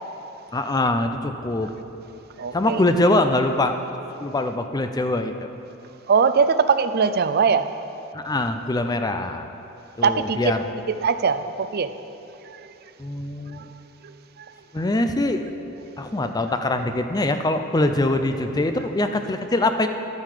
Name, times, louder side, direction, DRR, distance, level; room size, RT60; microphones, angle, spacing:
voice 1, 0.5-1.7 2.5-3.8 4.2-5.5 8.1-9.5 10.0-10.6 13.0-13.7 14.7-15.5 16.0-19.9, left 2 dB, 20° left, 7 dB, 0.5 m, -23 dB
voice 2, 2.4-2.8 6.1-7.7 10.0-10.5 10.9-11.9 12.5-12.7 13.5-13.6 14.0-14.1 14.4-14.5, right 5 dB, 50° right, 11 dB, 0.4 m, -21 dB
12.0 x 9.2 x 4.9 m, 2.9 s
head